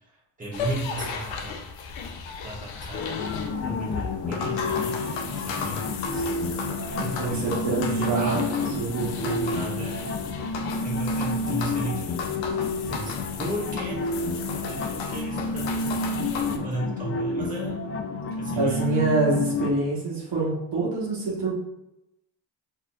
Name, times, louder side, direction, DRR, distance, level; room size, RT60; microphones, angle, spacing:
voice 1, 0.4-1.6 2.4-3.3 3.6-6.4 7.2-8.4 9.5-10.1 10.8-12.1 12.9-14.0 14.7-16.0 16.6-17.9 18.4-19.1, right 1 dB, 15° right, -4 dB, 1.2 m, -35 dB
sound 1, 0.5-16.6, left 5 dB, 65° left, 0.6 m, -35 dB
sound 2, 2.9-19.7, left 2 dB, 30° left, 0.3 m, -30 dB
voice 2, 7.0-8.4 8.8-9.5 18.5-21.6, right 3 dB, 55° right, -5 dB, 1.2 m, -26 dB
3.9 x 2.8 x 2.3 m, 0.87 s
supercardioid pair, 55°, 49 cm